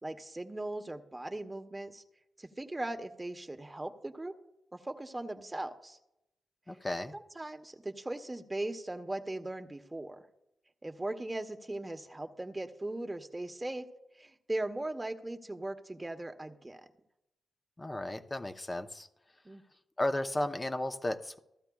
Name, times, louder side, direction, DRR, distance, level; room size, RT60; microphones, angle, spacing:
voice 1, 0.0-2.0 2.4-4.3 4.7-6.0 7.1-10.2 10.8-13.9 14.2-16.8 19.4-19.6, right 1 dB, 20° right, 7 dB, 1.0 m, -39 dB
voice 2, 6.7-7.1 17.8-19.1 20.0-21.4, left 1 dB, 25° left, 6 dB, 0.8 m, -34 dB
15.5 x 12.5 x 2.3 m, 0.88 s
supercardioid pair, 50°, 0 cm